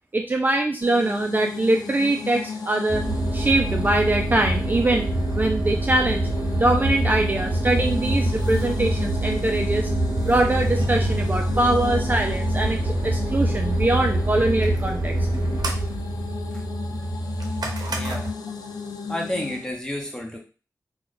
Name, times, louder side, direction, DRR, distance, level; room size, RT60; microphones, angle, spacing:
voice 1, 0.1-3.0 3.3-5.1 5.4-9.9 10.2-15.2, right 2 dB, 30° right, 3 dB, 0.3 m, -23 dB
sound 1, 0.8-19.7, left 5 dB, 85° left, 0.4 m, -36 dB
sound 2, 2.9-18.3, right 1 dB, 85° right, 0.6 m, -25 dB
voice 2, 17.9-18.3 19.1-20.4, left 1 dB, 10° left, -1 dB, 0.8 m, -30 dB
2.3 x 2.2 x 3.8 m, 0.36 s
wide cardioid pair, 65°, 7 cm